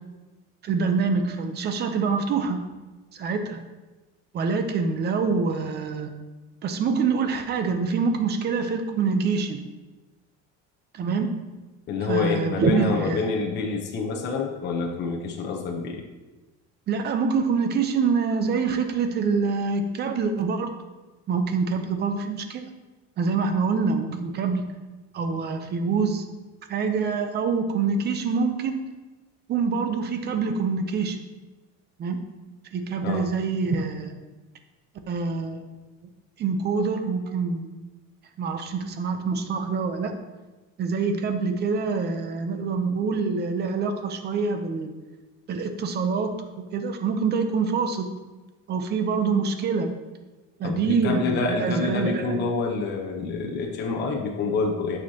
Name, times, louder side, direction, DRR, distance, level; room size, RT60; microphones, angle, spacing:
voice 1, 0.6-2.6 3.1-3.6 4.3-6.1 6.6-9.6 10.9-11.4 12.0-13.2 16.9-20.7 21.3-22.6 23.2-24.8 25.1-26.3 26.7-28.8 29.5-31.2 32.0-32.2 32.7-34.1 35.1-35.7 36.4-37.7 38.4-40.2 40.8-44.9 45.5-48.2 48.7-49.9 50.6-52.4, right 5 dB, 30° right, 7 dB, 0.6 m, -25 dB
voice 2, 11.9-16.0 33.0-33.2 50.6-55.0, left 4 dB, 30° left, 0 dB, 0.8 m, -27 dB
9.0 x 6.4 x 2.8 m, 1.2 s
cardioid pair, 165°, 33 cm